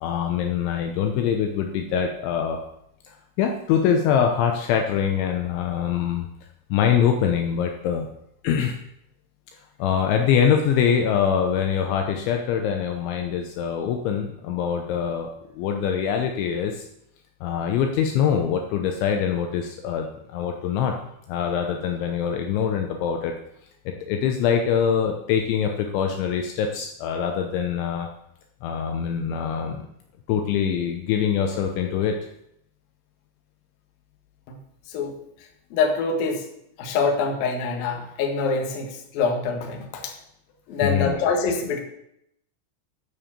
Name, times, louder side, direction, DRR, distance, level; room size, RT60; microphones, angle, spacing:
voice 1, 0.0-2.6 3.1-6.3 6.7-8.1 8.4-8.8 9.8-15.3 15.5-16.8 17.4-20.9 21.3-23.3 23.9-28.1 28.6-29.8 30.3-32.2 40.8-41.2, left 8 dB, 75° left, 3 dB, 3.1 m, -24 dB
voice 2, 35.7-36.4 36.8-40.1 40.7-41.8, left 4 dB, 60° left, 3 dB, 2.8 m, -25 dB
9.7 x 7.2 x 7.3 m, 0.77 s
omnidirectional pair, 5.7 m